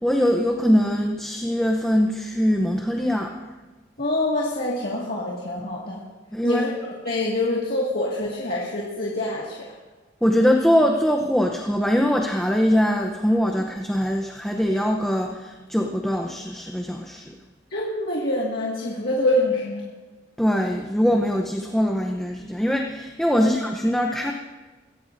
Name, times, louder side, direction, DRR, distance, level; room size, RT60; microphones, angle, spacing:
voice 1, 0.0-3.3 6.3-6.7 10.2-17.3 20.4-24.3, equal, 5° left, 1 dB, 0.7 m, -22 dB
voice 2, 4.0-6.0 6.4-9.7 17.7-19.9 23.4-23.5, left 1 dB, 50° left, -5 dB, 2.0 m, -25 dB
23.0 x 16.0 x 2.6 m, 1.3 s
head